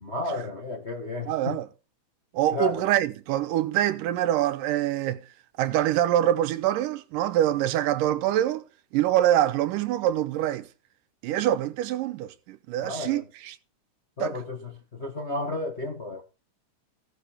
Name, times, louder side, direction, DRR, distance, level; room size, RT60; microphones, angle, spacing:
voice 1, 0.0-1.6 2.5-2.9 12.8-13.2 14.2-16.2, left 2 dB, 35° left, 1.0 m, -32 dB
voice 2, 1.3-1.7 2.3-5.2 5.6-8.6 8.9-10.7 11.2-13.6 14.2-14.3, right 12 dB, 90° right, 2.4 m, -25 dB
15.5 x 6.6 x 5.0 m
omnidirectional pair, 3.7 m